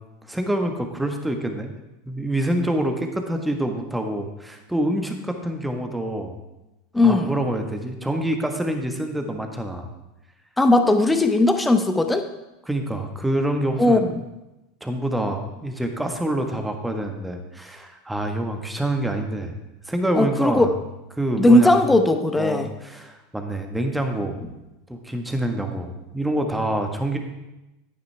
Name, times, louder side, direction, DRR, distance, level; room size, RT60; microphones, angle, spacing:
voice 1, 0.3-1.7 2.0-6.4 7.0-9.9 12.6-14.1 14.8-19.5 19.9-20.7 21.1-21.8 22.4-24.6 24.9-27.2, right 1 dB, 5° right, 4 dB, 1.5 m, -26 dB
voice 2, 6.9-7.3 10.6-12.3 13.8-14.0 20.1-20.7 21.4-22.7, left 2 dB, 10° left, 7 dB, 1.0 m, -17 dB
10.5 x 9.4 x 3.4 m, 0.99 s
hypercardioid pair, 90°, 0 cm